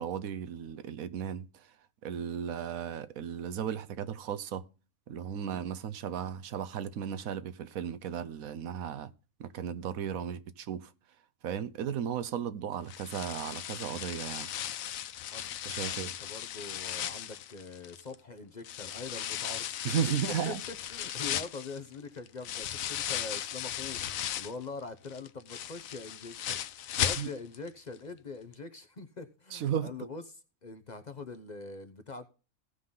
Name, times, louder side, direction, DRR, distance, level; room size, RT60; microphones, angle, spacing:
voice 1, 0.0-1.5 2.0-4.6 5.1-9.1 9.4-10.9 11.4-14.5 15.7-16.1 19.8-20.6 27.2-27.3 29.5-29.9, right 8 dB, 85° right, 1.2 m, -35 dB
sound 1, 12.9-18.2 18.6-24.6 25.0-27.7 28.0-28.1 28.5-28.6, left 11 dB, 80° left, 1.1 m, -36 dB
voice 2, 15.8-19.7 20.4-32.3, left 4 dB, 40° left, 0.8 m, -44 dB
16.5 x 5.6 x 3.8 m
omnidirectional pair, 1.4 m